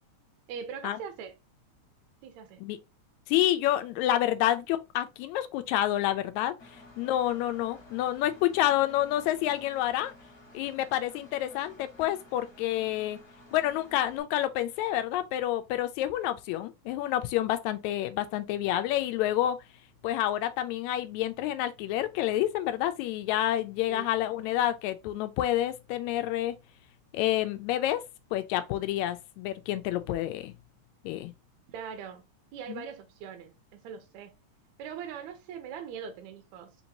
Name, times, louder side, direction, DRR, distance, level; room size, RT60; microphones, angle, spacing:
voice 1, 0.5-1.3 2.2-2.6 23.8-24.1 31.7-32.3 32.5-34.4 34.8-36.8, right 7 dB, 75° right, 1.8 m, -41 dB
voice 2, 3.3-6.5 7.0-10.1 10.5-13.2 13.5-19.6 20.0-26.5 27.1-28.0 28.3-30.5 31.0-31.3 32.7-32.9, left 13 dB, 80° left, 1.8 m, -28 dB
Engine, 6.6-14.2, left 2 dB, 50° left, 1.3 m, -53 dB
5.1 x 3.0 x 2.7 m
omnidirectional pair, 3.5 m